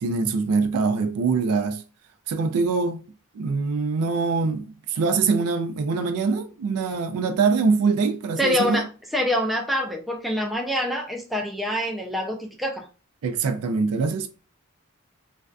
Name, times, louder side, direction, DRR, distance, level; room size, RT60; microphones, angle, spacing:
voice 1, 0.0-1.8 2.3-3.0 3.3-8.8 13.2-14.3, right 4 dB, 80° right, 0.4 m, -23 dB
voice 2, 8.4-8.8 9.1-12.9, left 1 dB, ahead, 0.3 m, -25 dB
2.5 x 2.2 x 2.2 m
head